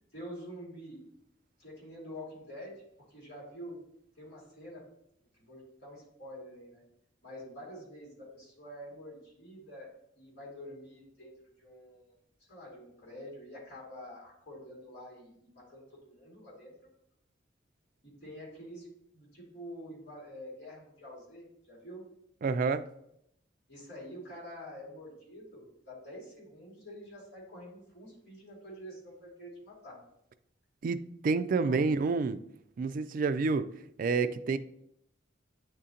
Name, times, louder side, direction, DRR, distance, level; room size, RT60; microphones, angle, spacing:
voice 1, 0.1-1.0 1.6-2.8 3.1-3.8 4.2-4.9 5.4-6.8 7.2-11.3 11.6-12.1 12.5-16.7 18.0-22.0 23.7-30.0 31.6-31.8, equal, 60° left, 2.5 m, -47 dB
voice 2, 22.4-22.8 30.8-32.4 32.8-33.7 34.0-34.6, right 4 dB, 45° right, 0.3 m, -28 dB
9.0 x 3.7 x 2.8 m
head